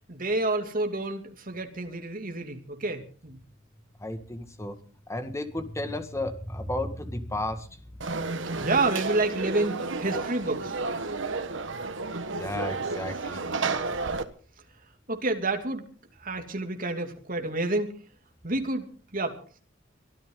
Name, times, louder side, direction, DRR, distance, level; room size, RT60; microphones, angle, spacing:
voice 1, 0.1-3.4 8.6-10.7 15.1-15.8 16.2-17.9 18.4-18.9 19.1-19.4, right 2 dB, 45° right, 4 dB, 2.7 m, -29 dB
voice 2, 4.0-4.8 5.1-7.9 12.4-13.5, left 1 dB, 15° left, 7 dB, 1.9 m, -33 dB
Conversation / Crowd, 8.0-14.2, right 3 dB, 70° right, 1.4 m, -31 dB
23.5 x 13.5 x 4.0 m, 0.41 s
head